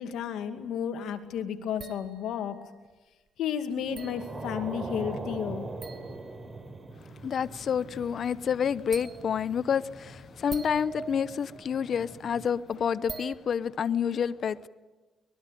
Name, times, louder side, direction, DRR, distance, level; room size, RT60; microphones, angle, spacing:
voice 1, 0.0-2.6 3.4-5.7, left 8 dB, 80° left, 7 dB, 2.3 m, -32 dB
sound 1, 1.8-2.7 4.0-4.8 5.8-6.7 7.6-7.8 8.1-8.2 8.9-9.6 10.3-12.4 12.7-12.8 13.1-13.4, right 5 dB, 45° right, 1.7 m, -44 dB
sound 2, 3.8-12.5, right 2 dB, 25° right, 5.1 m, -42 dB
voice 2, 7.2-14.7, left 7 dB, 55° left, 16 dB, 0.8 m, -29 dB
24.5 x 20.5 x 9.2 m, 1.2 s
cardioid pair, 90°, 0 cm